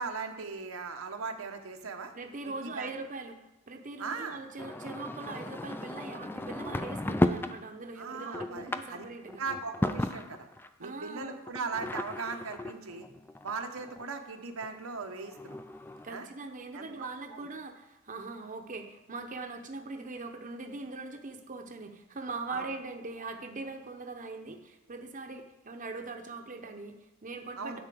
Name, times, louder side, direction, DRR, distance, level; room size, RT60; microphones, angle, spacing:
voice 1, 0.0-2.1 2.5-2.9 4.0-4.4 8.0-9.1 9.4-10.5 10.8-13.1 13.4-15.6 16.1-16.3 16.7-17.4 22.5-22.7 27.6-27.8, right 4 dB, 85° right, 5 dB, 0.9 m, -38 dB
voice 2, 2.1-3.4 3.7-9.4 10.8-11.4 16.0-27.8, right 3 dB, 40° right, 4 dB, 0.8 m, -41 dB
sound 1, 4.6-7.6 8.0-10.7 11.5-14.0 14.6-14.7 14.9-15.0 15.2-16.1, left 1 dB, 10° left, 0.3 m, -34 dB
10.0 x 4.3 x 7.6 m, 0.95 s
head